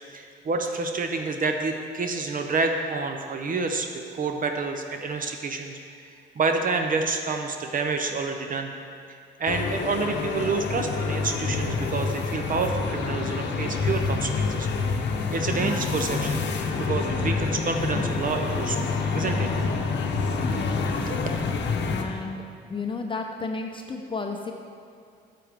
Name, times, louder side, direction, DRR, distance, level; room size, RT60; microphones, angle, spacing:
voice 1, 0.1-8.7 9.4-14.7 15.3-16.4 16.8-19.5 21.1-21.3, right 4 dB, 45° right, 5 dB, 0.6 m, -28 dB
sound 1, 9.5-22.0, left 4 dB, 60° left, 0.8 m, -27 dB
voice 2, 20.4-21.1 21.9-22.4 22.7-24.5, left 4 dB, 25° left, 3 dB, 0.6 m, -33 dB
8.4 x 7.6 x 3.5 m, 2.3 s
cardioid pair, 90°, 20 cm